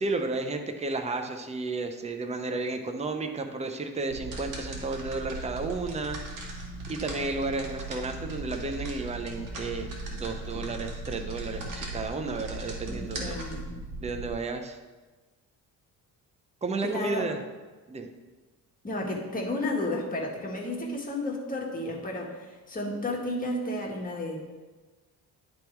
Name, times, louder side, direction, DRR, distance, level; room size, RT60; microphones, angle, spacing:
voice 1, 0.0-6.5 6.9-13.4 14.0-14.8 16.6-17.4 17.9-18.1, right 3 dB, 20° right, 6 dB, 0.7 m, -32 dB
sound 1, 4.1-14.3, right 2 dB, 60° right, 1.8 m, -38 dB
voice 2, 12.9-13.7 16.8-17.3 18.8-24.4, left 1 dB, 20° left, -2 dB, 1.7 m, -32 dB
10.5 x 3.6 x 4.5 m, 1.3 s
cardioid pair, 100°, 37 cm